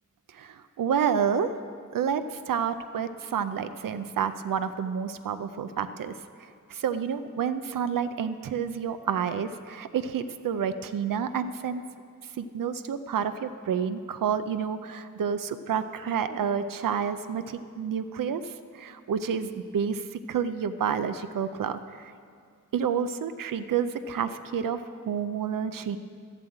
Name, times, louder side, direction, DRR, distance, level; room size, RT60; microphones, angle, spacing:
voice 1, 0.3-1.5 1.9-6.1 6.7-11.8 12.4-22.1 22.7-26.0, right 7 dB, 90° right, 10 dB, 0.5 m, -29 dB
12.5 x 7.5 x 8.7 m, 2.2 s
wide cardioid pair, 165°, 32 cm